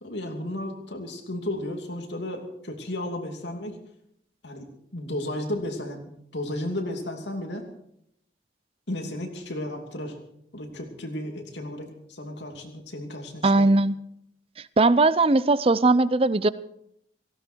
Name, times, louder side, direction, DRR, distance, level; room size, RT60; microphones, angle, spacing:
voice 1, 0.0-3.8 4.4-4.7 4.9-7.7 8.9-10.2 10.5-13.7, left 1 dB, 80° left, 3 dB, 2.8 m, -33 dB
voice 2, 13.4-13.9 14.8-16.5, right 2 dB, 30° right, 17 dB, 0.5 m, -19 dB
18.0 x 16.5 x 4.6 m, 0.74 s
head